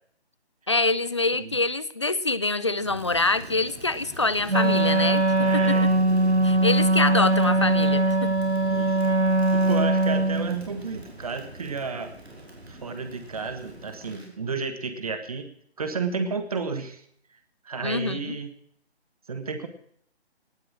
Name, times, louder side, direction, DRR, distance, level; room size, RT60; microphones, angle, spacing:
voice 1, 0.7-5.8 6.4-8.3 17.8-18.4, left 3 dB, 25° left, 17 dB, 0.6 m, -25 dB
Crackle, 2.8-14.3, right 1 dB, 70° right, 5.4 m, -43 dB
Wind instrument woodwind instrument, 4.5-10.6, right 2 dB, 85° right, 1.4 m, -21 dB
voice 2, 5.4-5.9 8.7-9.2 9.5-12.2 12.7-15.5 15.8-17.0 17.7-18.5 19.3-19.7, right 4 dB, 35° right, 9 dB, 1.6 m, -32 dB
18.5 x 10.0 x 6.1 m, 0.66 s
figure-of-eight pair, 150°, 33 cm